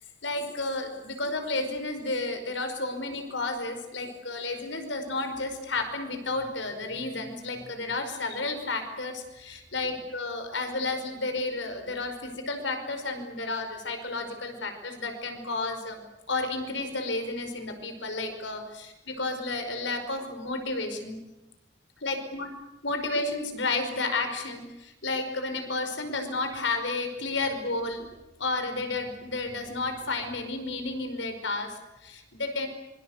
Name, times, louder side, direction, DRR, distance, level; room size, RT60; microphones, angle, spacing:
voice 1, 0.2-16.0 16.3-21.2 22.0-22.5 22.8-28.1 28.4-32.7, left 3 dB, 80° left, 7 dB, 5.2 m, -32 dB
25.5 x 24.0 x 8.1 m, 0.99 s
head